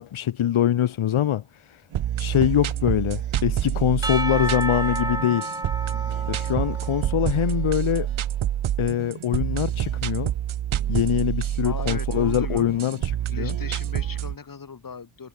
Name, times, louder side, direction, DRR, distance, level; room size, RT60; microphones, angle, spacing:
voice 1, 0.0-1.8 2.2-5.5 6.3-8.1 8.8-10.3 10.9-13.5, left 11 dB, 75° left, 1.1 m, -24 dB
sound 1, 1.9-14.4, right 11 dB, 75° right, 1.0 m, -27 dB
Percussion / Church bell, 4.0-7.7, right 1 dB, 10° right, 2.2 m, -31 dB
voice 2, 11.6-12.9 13.3-15.3, left 5 dB, 40° left, 4.0 m, -38 dB
wide cardioid pair, 160°, 49 cm